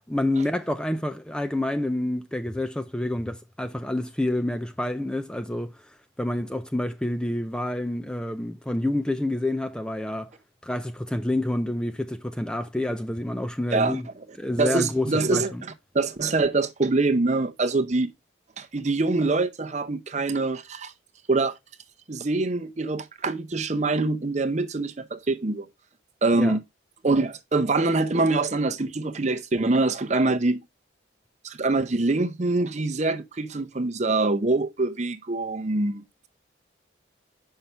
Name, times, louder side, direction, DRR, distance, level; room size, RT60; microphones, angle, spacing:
voice 1, 0.1-5.7 6.2-10.3 10.6-14.1 14.4-15.6 26.3-26.6, left 1 dB, 5° left, 0.4 m, -28 dB
voice 2, 14.6-18.1 18.6-20.9 21.3-21.5 22.1-25.7 26.2-26.6 27.0-30.6 31.4-36.0, right 3 dB, 35° right, 0.6 m, -24 dB
7.4 x 5.6 x 3.3 m
head